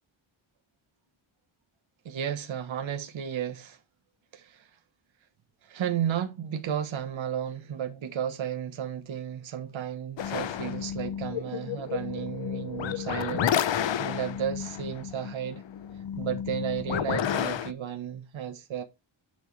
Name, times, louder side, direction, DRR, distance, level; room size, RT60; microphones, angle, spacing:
voice 1, 2.0-3.8 4.3-4.7 5.6-15.6 16.2-18.8, right 9 dB, 65° right, 1.4 m, -33 dB
sound 1, 10.2-17.7, left 9 dB, 60° left, 0.9 m, -31 dB
10.5 x 6.3 x 3.4 m
wide cardioid pair, 170°, 49 cm